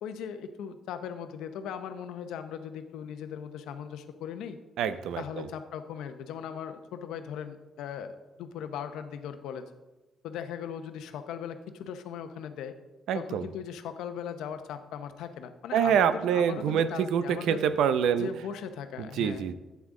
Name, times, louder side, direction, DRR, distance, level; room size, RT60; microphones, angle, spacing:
voice 1, 0.0-4.6 5.2-9.7 10.2-12.8 13.1-17.6 18.2-19.5, left 8 dB, 85° left, 8 dB, 0.7 m, -39 dB
voice 2, 4.8-5.5 13.1-13.5 15.7-18.3 19.2-19.5, right 8 dB, 80° right, 13 dB, 0.5 m, -26 dB
11.0 x 8.5 x 3.7 m, 1.1 s
cardioid pair, 90°, 0 cm